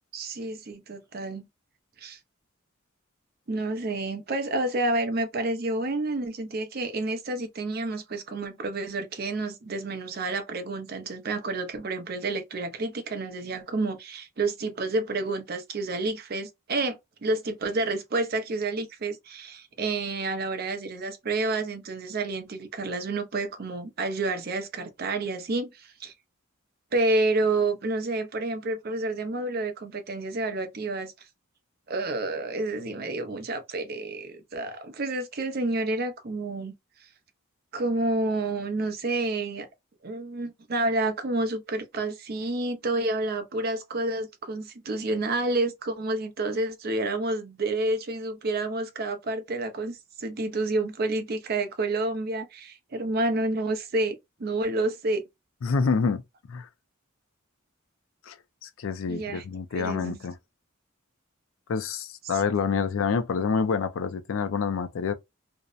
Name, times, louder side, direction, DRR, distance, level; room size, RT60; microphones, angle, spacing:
voice 1, 0.1-1.5 2.0-2.2 3.5-26.1 26.9-31.1 31.9-36.7 37.7-39.7 40.0-55.3 59.1-59.4 59.7-60.2 62.3-62.4, right 2 dB, 50° right, 0.5 m, -29 dB
voice 2, 55.6-56.2 56.5-56.7 58.3-58.4 58.6-60.4 61.7-65.1, left 5 dB, 80° left, 0.4 m, -27 dB
2.6 x 2.0 x 2.3 m
head